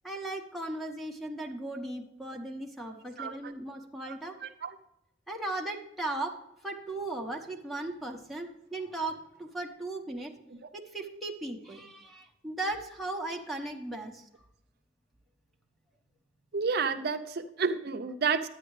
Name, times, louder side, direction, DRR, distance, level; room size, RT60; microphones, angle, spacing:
voice 1, 0.0-4.4 5.3-6.4 6.6-10.3 10.7-14.2, right 2 dB, ahead, 2 dB, 1.1 m, -37 dB
voice 2, 3.2-3.5 4.4-4.7 16.5-18.5, right 5 dB, 60° right, 6 dB, 0.5 m, -30 dB
10.0 x 9.1 x 3.2 m, 0.84 s
head